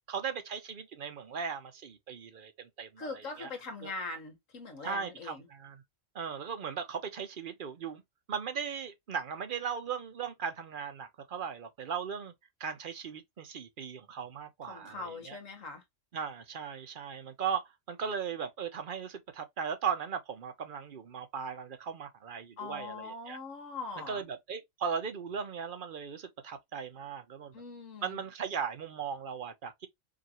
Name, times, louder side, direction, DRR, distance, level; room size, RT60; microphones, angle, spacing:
voice 1, 0.1-3.5 3.8-3.9 4.8-5.8 6.1-8.0 8.3-12.3 12.6-15.4 16.1-23.4 24.0-27.5 28.0-29.9, right 7 dB, 50° right, 0.8 m, -38 dB
voice 2, 3.0-5.5 14.6-15.8 22.6-24.2 27.5-28.2, left 3 dB, 75° left, 1.7 m, -41 dB
5.0 x 2.5 x 2.9 m
omnidirectional pair, 1.4 m